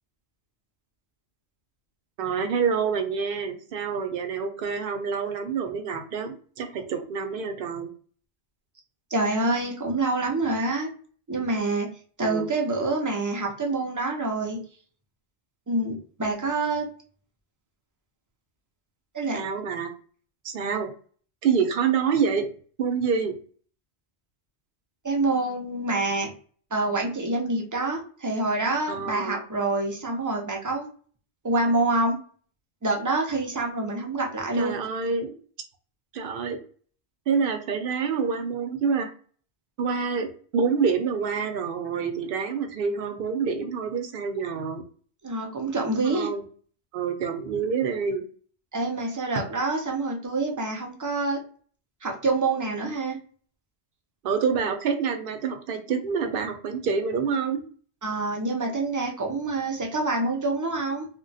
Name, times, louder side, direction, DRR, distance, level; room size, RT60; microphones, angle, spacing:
voice 1, 2.2-7.9 12.2-12.5 19.3-19.9 20.4-20.9 21.4-22.4 22.8-23.3 28.9-29.4 34.6-35.3 36.1-36.6 37.3-39.1 39.8-44.8 46.0-46.4 46.9-48.2 54.2-57.6, right 6 dB, 60° right, 6 dB, 0.7 m, -27 dB
voice 2, 9.1-10.9 11.3-11.9 12.2-14.6 15.7-16.9 19.1-19.4 25.0-26.3 26.7-30.9 31.4-32.2 32.8-34.8 45.2-46.3 48.7-51.4 52.0-53.2 58.0-61.1, right 2 dB, 30° right, 0 dB, 0.3 m, -26 dB
2.2 x 2.2 x 3.9 m, 0.43 s
omnidirectional pair, 1.1 m